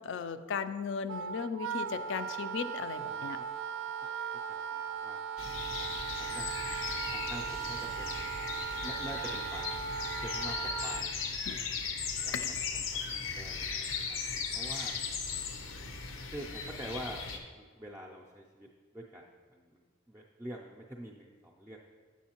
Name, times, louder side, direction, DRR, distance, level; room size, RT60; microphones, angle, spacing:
voice 1, 0.0-3.4 11.5-11.6 12.3-12.6, left 6 dB, 65° left, 12 dB, 0.4 m, -36 dB
Wind instrument woodwind instrument, 1.1-11.1, right 7 dB, 75° right, 0.4 m, -38 dB
voice 2, 3.1-3.5 4.5-5.2 5.8-5.9 6.2-6.5 7.1-8.2 8.8-9.8 10.1-11.3 12.2-12.3 13.1-14.9 16.3-17.2 17.6-18.7 18.9-19.2 19.5-21.8, right 1 dB, 10° right, -1 dB, 0.4 m, -46 dB
sound 1, 5.4-17.4, left 5 dB, 85° left, 0.7 m, -37 dB
7.2 x 6.9 x 2.9 m, 1.5 s
head